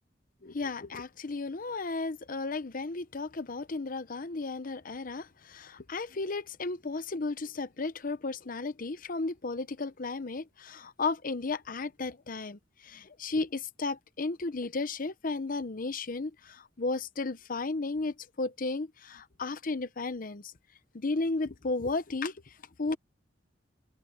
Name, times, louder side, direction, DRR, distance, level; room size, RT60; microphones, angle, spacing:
voice 1, 0.4-20.4 20.9-22.3 22.8-23.0, left 3 dB, 50° left, 0.8 m, -34 dB
open air
head